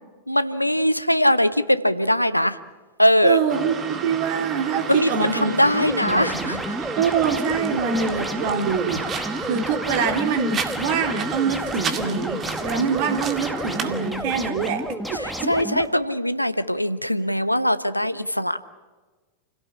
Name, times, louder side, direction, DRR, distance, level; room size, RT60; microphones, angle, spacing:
voice 1, 0.3-2.6 3.0-3.4 4.9-6.6 15.1-18.6, equal, 90° left, 14 dB, 0.9 m, -21 dB
voice 2, 3.2-5.7 6.0-6.6 6.9-15.5, right 6 dB, 50° right, 6 dB, 2.8 m, -25 dB
sound 1, 3.5-14.1, right 5 dB, 25° right, 2.3 m, -32 dB
sound 2, 5.7-15.9, equal, ahead, 2.1 m, -31 dB
29.0 x 17.0 x 8.5 m, 1.3 s
figure-of-eight pair, 90°, 0 cm